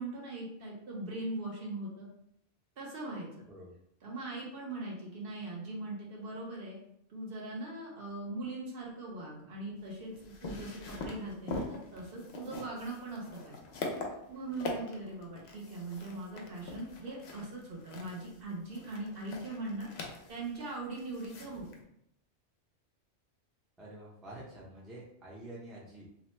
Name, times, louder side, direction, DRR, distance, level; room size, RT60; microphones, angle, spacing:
voice 1, 0.0-2.1 2.8-3.3 4.0-6.8 7.1-13.6 14.3-19.9 20.3-21.7, right 2 dB, 55° right, -3 dB, 0.9 m, -40 dB
sound 1, 9.8-21.8, left 3 dB, 70° left, 0.8 m, -43 dB
voice 2, 23.8-26.1, right 1 dB, ahead, -6 dB, 0.5 m, -48 dB
2.8 x 2.0 x 3.1 m, 0.74 s
omnidirectional pair, 1.2 m